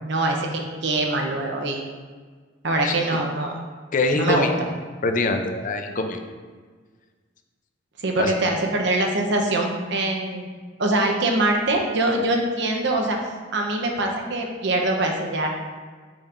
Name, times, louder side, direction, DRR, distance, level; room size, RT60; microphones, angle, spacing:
voice 1, 0.0-1.8 2.6-3.6 4.1-4.5 8.0-10.5 10.8-15.5, right 2 dB, 65° right, 2 dB, 0.8 m, -23 dB
voice 2, 2.8-3.2 3.9-4.5 5.0-6.2 8.2-8.3, left 3 dB, 45° left, 5 dB, 0.5 m, -24 dB
7.0 x 5.2 x 2.6 m, 1.5 s
head